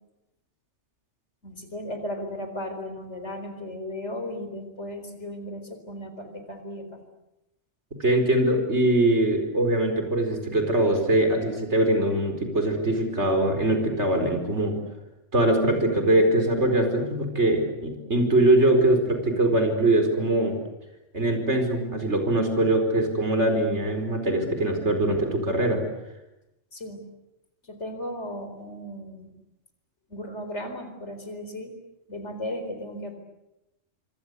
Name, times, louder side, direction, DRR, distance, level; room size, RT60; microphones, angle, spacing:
voice 1, 1.4-7.0 26.7-27.0 27.6-29.3 30.1-31.7 32.1-33.2, left 1 dB, 75° left, 7 dB, 4.6 m, -36 dB
voice 2, 8.0-14.8 15.3-20.6 21.1-25.8, right 1 dB, 70° right, 5 dB, 5.1 m, -22 dB
26.5 x 25.0 x 8.3 m, 0.92 s
omnidirectional pair, 1.2 m